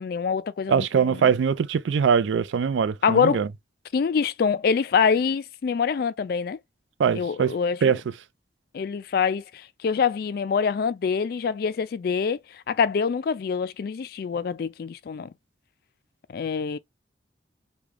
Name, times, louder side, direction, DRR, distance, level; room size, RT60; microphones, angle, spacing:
voice 1, 0.0-1.3 3.0-3.4 3.9-6.6 7.1-8.0 8.7-12.4 12.7-15.3 16.3-16.8, left 6 dB, 55° left, 0.3 m, -25 dB
voice 2, 0.7-3.5 7.0-7.5 7.8-8.0, right 6 dB, 90° right, 0.4 m, -22 dB
3.6 x 2.2 x 3.2 m
head